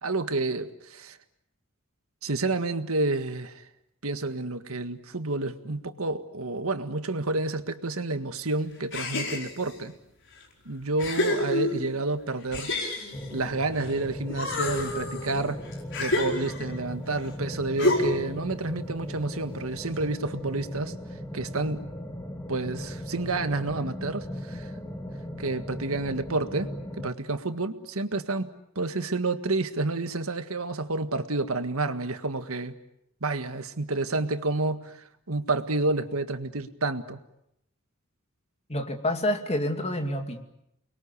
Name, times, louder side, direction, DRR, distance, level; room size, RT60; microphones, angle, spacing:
voice 1, 0.0-1.2 2.2-3.6 4.0-9.9 10.6-12.7 13.3-15.6 16.0-20.9 21.3-21.8 22.5-24.7 25.4-32.8 33.2-37.2, right 2 dB, 80° right, 1.8 m, -29 dB
sound 1, 8.9-9.8 10.4-10.5 11.0-12.0 12.5-13.9 14.3-16.8 17.8-18.4, left 2 dB, 60° left, 5.0 m, -29 dB
sound 2, 13.1-27.1, equal, 15° left, 2.1 m, -38 dB
voice 2, 38.7-40.4, left 1 dB, 30° left, 2.6 m, -28 dB
30.0 x 22.0 x 8.4 m
head